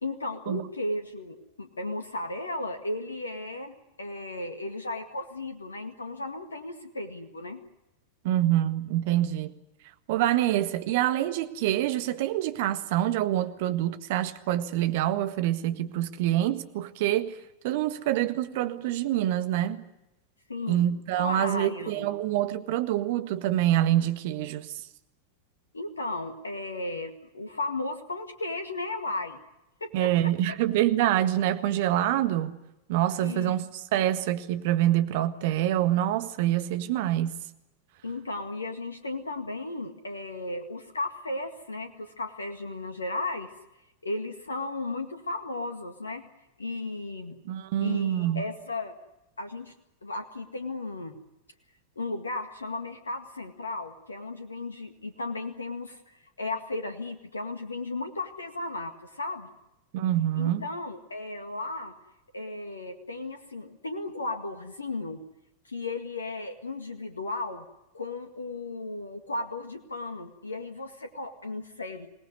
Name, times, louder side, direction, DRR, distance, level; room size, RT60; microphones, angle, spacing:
voice 1, 0.0-7.6 20.5-20.9 21.2-22.1 25.7-29.4 29.8-30.1 33.2-33.6 38.0-43.5 44.0-46.2 46.6-47.4 47.8-48.9 49.4-49.7 50.0-51.1 52.0-59.5 60.4-61.9 62.3-65.2 65.7-67.7 67.9-72.1, left 2 dB, 75° left, 2.0 m, -35 dB
voice 2, 8.2-9.5 10.1-17.4 17.6-19.8 20.7-24.7 29.9-32.6 32.9-37.3 47.4-48.4 59.9-60.7, right 13 dB, 50° right, 1.6 m, -26 dB
26.5 x 19.0 x 9.7 m
figure-of-eight pair, 90°, 0 cm